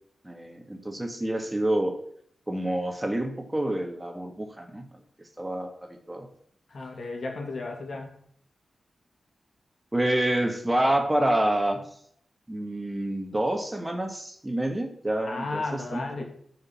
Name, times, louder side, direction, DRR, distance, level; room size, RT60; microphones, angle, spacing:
voice 1, 0.2-2.0 2.5-4.8 5.4-6.3 9.9-11.8 12.5-16.2, right 1 dB, 20° right, 5 dB, 1.8 m, -28 dB
voice 2, 6.7-8.2 15.2-16.2, left 3 dB, 65° left, 1 dB, 2.5 m, -34 dB
9.1 x 5.2 x 7.4 m, 0.63 s
cardioid pair, 45°, 0 cm